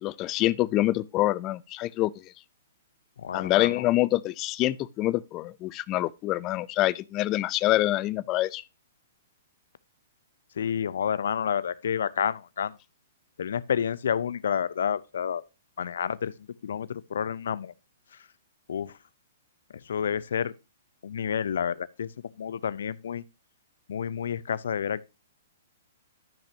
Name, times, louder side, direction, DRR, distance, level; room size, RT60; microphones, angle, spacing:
voice 1, 0.0-2.2 3.3-8.6, left 16 dB, 30° left, 0.5 m, -26 dB
voice 2, 3.2-3.9 10.5-12.8 13.4-15.4 15.8-17.7 18.1-18.2 18.7-19.0 19.7-20.5 21.0-22.1 22.4-23.2 23.9-25.1, left 8 dB, 70° left, 0.6 m, -30 dB
13.5 x 5.9 x 2.8 m
hypercardioid pair, 125°, 0 cm